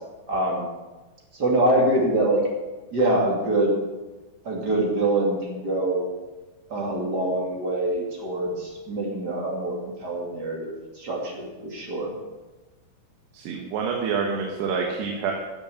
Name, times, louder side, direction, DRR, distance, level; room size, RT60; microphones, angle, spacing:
voice 1, 0.3-0.7 1.4-2.4 2.9-3.8 4.4-6.1 6.7-12.1, right 1 dB, 30° right, -1 dB, 2.5 m, -24 dB
voice 2, 13.3-15.3, right 5 dB, 90° right, 1 dB, 3.4 m, -27 dB
15.0 x 7.6 x 7.1 m, 1.2 s
omnidirectional pair, 4.6 m